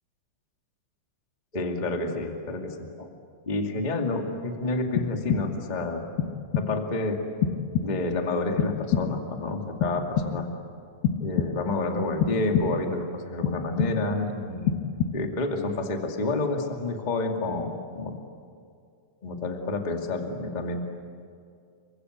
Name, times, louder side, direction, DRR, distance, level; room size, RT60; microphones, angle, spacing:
voice 1, 1.5-3.1 3.4-6.1 6.5-7.2 7.8-10.5 11.2-18.1 19.2-20.8, left 2 dB, 20° left, 2 dB, 1.0 m, -29 dB
sound 1, 5.0-5.8 6.2-6.9 7.4-8.2 8.6-9.4 9.8-10.6 11.0-11.8 12.2-13.0 13.4-14.3 14.7-15.5, left 8 dB, 75° left, 2.6 m, -28 dB
29.5 x 24.0 x 8.1 m, 2.3 s
omnidirectional pair, 5.1 m